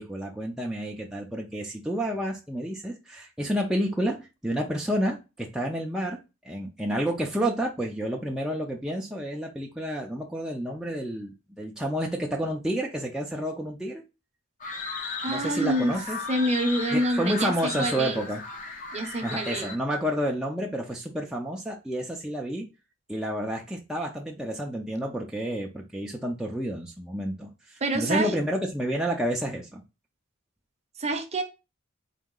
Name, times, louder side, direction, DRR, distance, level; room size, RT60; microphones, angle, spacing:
voice 1, 0.0-4.2 4.4-6.2 6.4-14.0 15.3-16.2 16.9-18.4 19.2-22.7 23.1-29.8, equal, 5° right, -2 dB, 0.4 m, -30 dB
sound 1, 14.6-19.8, left 4 dB, 40° left, 0.7 m, -36 dB
voice 2, 15.2-16.0 16.3-18.2 18.9-19.7 27.8-28.3 31.0-31.4, right 1 dB, 30° right, 6 dB, 0.7 m, -27 dB
4.0 x 2.7 x 3.6 m, 0.28 s
head